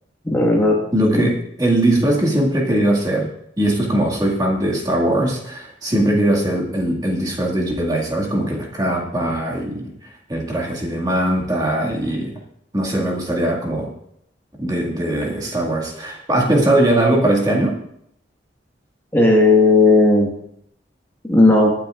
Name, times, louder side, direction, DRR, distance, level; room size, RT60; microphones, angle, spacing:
voice 1, 0.2-0.8 1.1-1.3 19.1-20.3 21.3-21.7, left 2 dB, 10° left, -1 dB, 1.6 m, -14 dB
voice 2, 0.9-3.3 3.6-9.9 10.3-12.3 12.7-13.9 14.6-17.7, right 1 dB, 20° right, -1 dB, 2.0 m, -20 dB
23.0 x 9.4 x 2.5 m, 0.72 s
head